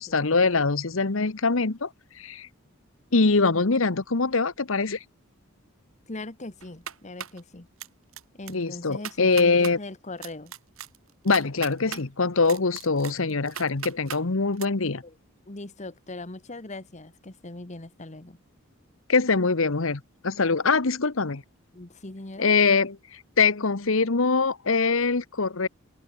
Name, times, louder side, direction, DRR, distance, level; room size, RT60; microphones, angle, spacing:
voice 1, 0.0-1.9 2.2-2.5 3.1-5.0 8.5-9.8 11.2-15.0 19.1-21.4 22.4-25.7, left 4 dB, 65° left, 1.1 m, -23 dB
voice 2, 6.1-7.7 8.3-10.5 15.0-15.1 15.5-18.4 21.7-22.5, left 2 dB, 35° left, 1.4 m, -40 dB
sound 1, 6.6-7.4 7.8-8.2 8.5-8.6 8.9-9.7 10.2-12.0 12.5-14.2 14.6-14.7, right 9 dB, 70° right, 3.6 m, -38 dB
head